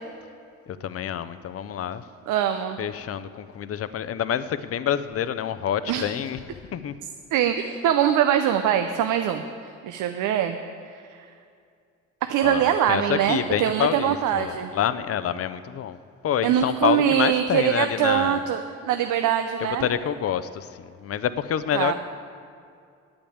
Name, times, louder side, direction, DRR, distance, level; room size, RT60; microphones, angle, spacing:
voice 1, 0.8-2.0 2.8-6.4 6.7-6.9 12.4-16.0 16.2-18.4 19.6-21.9, left 9 dB, 50° left, 14 dB, 0.6 m, -27 dB
voice 2, 2.3-2.8 5.9-6.1 7.3-9.4 9.8-10.6 10.9-11.2 12.3-14.7 16.4-19.9 21.7-21.9, right 10 dB, 85° right, 7 dB, 0.6 m, -23 dB
8.8 x 8.7 x 8.6 m, 2.3 s
cardioid pair, 90°, 30 cm